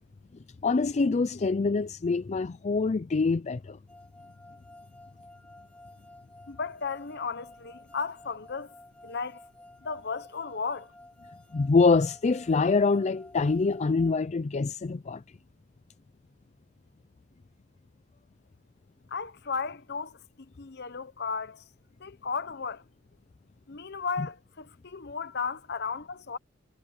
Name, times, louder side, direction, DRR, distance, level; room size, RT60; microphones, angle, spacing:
voice 1, 0.6-3.8 11.5-15.2 24.2-24.3, left 4 dB, 35° left, 0.4 m, -25 dB
sound 1, 3.9-14.1, left 1 dB, 5° left, 1.5 m, -52 dB
voice 2, 6.5-8.7 9.0-9.4 9.8-10.9 19.1-21.7 22.0-22.8 23.7-26.4, left 5 dB, 55° left, 1.0 m, -35 dB
head